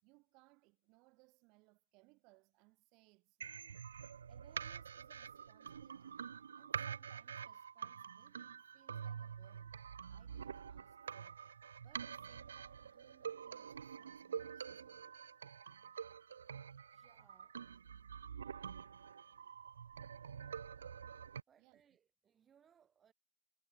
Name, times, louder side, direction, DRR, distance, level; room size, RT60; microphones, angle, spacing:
voice 1, 0.0-3.9 4.3-9.8 10.1-11.4 11.8-15.1 21.6-21.8, right 27 dB, 40° right, 3.0 m, -69 dB
sound 1, 3.4-21.4, right 7 dB, 70° right, 0.5 m, -47 dB
voice 2, 16.9-17.6 21.5-23.1, right 8 dB, 25° right, 1.7 m, -70 dB
figure-of-eight pair, 90°, 0 cm